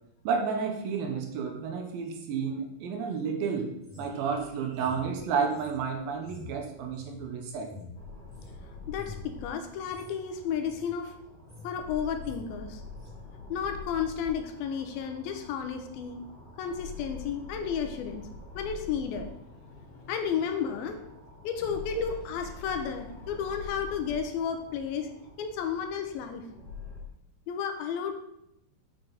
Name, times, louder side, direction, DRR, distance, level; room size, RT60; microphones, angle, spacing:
voice 1, 0.2-7.7, right 6 dB, 80° right, 3 dB, 2.4 m, -31 dB
sound 1, 3.8-8.6 8.9-9.3 9.8-10.1 10.5-10.9 11.2-11.8 12.0-12.4 12.9-13.2, left 3 dB, 20° right, 0.4 m, -48 dB
sound 2, 7.9-27.0, left 4 dB, 20° left, 2.1 m, -46 dB
voice 2, 8.9-11.1 11.6-12.8 13.5-16.2 16.6-18.3 18.6-19.3 19.7-21.1 21.4-25.1 25.4-26.4 27.5-28.2, left 7 dB, 85° left, 6 dB, 2.4 m, -32 dB
6.8 x 5.9 x 3.9 m, 0.80 s
omnidirectional pair, 4.4 m